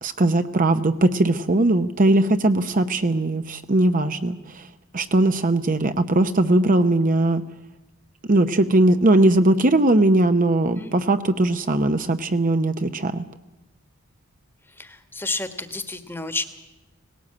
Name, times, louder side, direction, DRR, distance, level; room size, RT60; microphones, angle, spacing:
voice 1, 0.0-4.7 4.9-7.4 8.3-13.2, right 2 dB, 40° right, 9 dB, 0.8 m, -19 dB
voice 2, 14.8-16.4, left 3 dB, 10° left, 9 dB, 1.4 m, -30 dB
19.0 x 17.5 x 8.6 m, 1.0 s
head